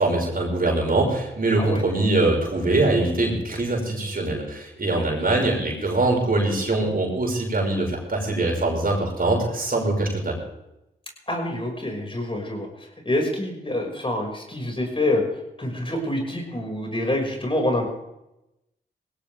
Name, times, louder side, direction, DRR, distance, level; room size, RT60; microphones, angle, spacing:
voice 1, 0.0-10.4, right 2 dB, 45° right, 0 dB, 6.1 m, -23 dB
voice 2, 11.3-15.2 15.6-17.9, left 1 dB, 25° left, 1 dB, 6.0 m, -26 dB
19.0 x 17.0 x 3.6 m, 0.91 s
supercardioid pair, 45°, 20 cm